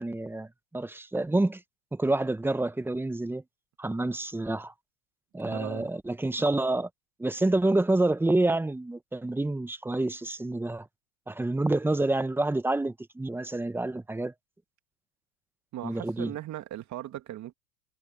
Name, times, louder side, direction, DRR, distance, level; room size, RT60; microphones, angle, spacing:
voice 1, 0.0-1.6 1.9-3.4 3.8-4.7 5.3-6.9 7.2-10.9 11.3-14.3 15.8-16.3, right 2 dB, 5° right, 1.0 m, -28 dB
voice 2, 5.4-5.9 15.7-17.5, right 13 dB, 40° right, 2.4 m, -38 dB
hypercardioid pair, 110°, 46 cm